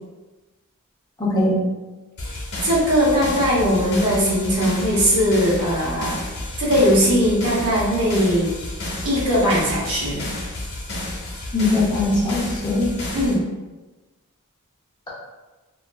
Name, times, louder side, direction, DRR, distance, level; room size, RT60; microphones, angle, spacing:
voice 1, 1.2-1.6 11.5-12.9, left 2 dB, 20° left, -7 dB, 0.7 m, -20 dB
sound 1, 2.2-13.3, left 1 dB, 45° left, 0.8 m, -31 dB
voice 2, 2.3-6.2 6.6-8.5 9.0-10.3 13.1-13.4, equal, 65° right, -7 dB, 0.8 m, -19 dB
3.1 x 2.3 x 2.2 m, 1.2 s
head